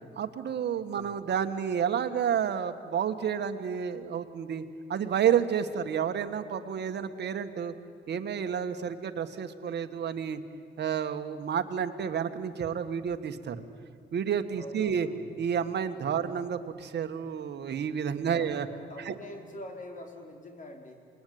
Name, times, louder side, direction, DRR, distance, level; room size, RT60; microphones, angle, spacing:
voice 1, 0.2-4.6 4.9-7.7 8.1-10.4 10.8-13.6 14.1-15.1 15.4-18.7 19.1-19.2, right 8 dB, 60° right, 8 dB, 1.8 m, -30 dB
voice 2, 0.9-1.2 14.5-15.3 18.3-18.5 18.9-21.0, left 1 dB, 40° left, 3 dB, 4.3 m, -45 dB
27.5 x 21.0 x 9.5 m, 2.3 s
cardioid pair, 90°, 20 cm